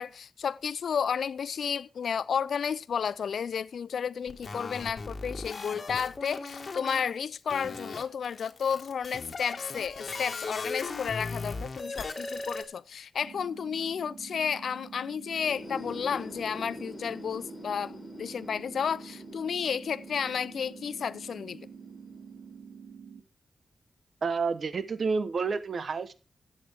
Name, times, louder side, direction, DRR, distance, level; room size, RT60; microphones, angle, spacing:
voice 1, 0.0-21.7, left 7 dB, 80° left, 0.4 m, -32 dB
sound 1, 4.3-7.0 7.5-12.6, left 3 dB, 50° left, 1.7 m, -38 dB
sound 2, 13.2-23.2, right 6 dB, 90° right, 2.4 m, -48 dB
sound 3, 15.3-22.9, left 1 dB, 35° left, 2.7 m, -46 dB
voice 2, 24.2-26.1, right 4 dB, 65° right, 1.0 m, -29 dB
14.0 x 8.5 x 3.5 m
cardioid pair, 55°, 0 cm